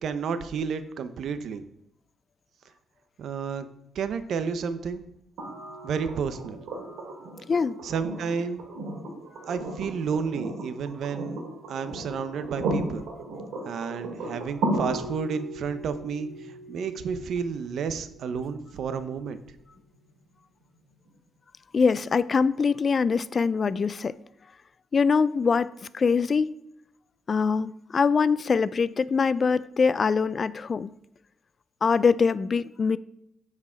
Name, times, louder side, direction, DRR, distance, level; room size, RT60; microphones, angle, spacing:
voice 1, 0.0-1.6 3.2-3.7 3.9-5.0 5.8-6.6 7.8-8.6 9.5-13.1 13.7-19.4, right 6 dB, 70° right, 11 dB, 0.7 m, -31 dB
sound 1, 5.4-19.3 21.1-21.2, right 2 dB, 85° right, 2.2 m, -35 dB
voice 2, 21.7-24.2 24.9-26.5 27.3-30.9 31.8-33.0, left 5 dB, 40° left, 18 dB, 0.3 m, -23 dB
8.3 x 4.7 x 5.0 m, 0.79 s
cardioid pair, 110°, 0 cm